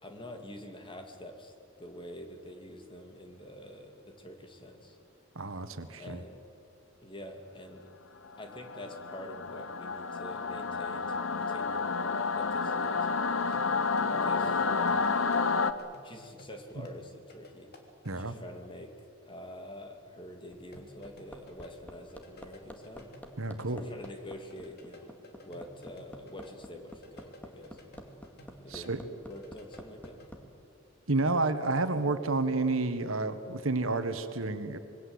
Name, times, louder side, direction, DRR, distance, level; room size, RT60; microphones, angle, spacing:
voice 1, 0.0-5.0 6.0-6.4 7.0-7.9 8.4-13.6 14.2-15.5 16.0-17.7 18.1-23.1 23.7-25.2 25.4-27.8 28.6-29.0 29.3-30.5, left 1 dB, 25° left, 5 dB, 2.5 m, -47 dB
voice 2, 5.3-6.2 18.0-18.3 23.4-23.8 28.7-29.0 31.1-34.8, right 3 dB, 85° right, 10 dB, 1.5 m, -30 dB
Singing / Musical instrument, 8.5-15.7, left 4 dB, 70° left, 1.0 m, -30 dB
sound 1, 13.2-18.3 20.7-24.1 24.4-28.9 29.2-30.3, equal, 55° left, 3.2 m, -54 dB
Hammer, 20.5-30.4 31.8-31.9, equal, 10° left, 2.2 m, -48 dB
26.0 x 22.0 x 8.0 m, 2.5 s
head